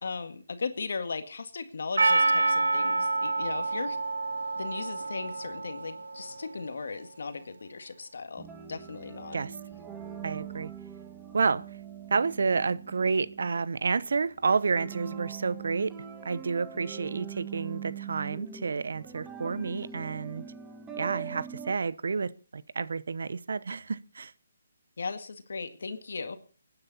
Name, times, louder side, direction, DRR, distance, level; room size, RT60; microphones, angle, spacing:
voice 1, 0.0-4.0 4.6-9.4 25.0-26.4, left 4 dB, 70° left, 1.9 m, -37 dB
Percussion, 2.0-6.5, right 3 dB, 85° right, 1.6 m, -28 dB
sound 1, 8.4-21.7, right 8 dB, 10° right, 1.7 m, -43 dB
voice 2, 10.2-10.7 11.3-11.6 12.1-15.9 16.2-20.4 21.0-24.3, right 4 dB, 70° right, 0.8 m, -30 dB
25.0 x 9.8 x 4.1 m
hypercardioid pair, 155°, 0 cm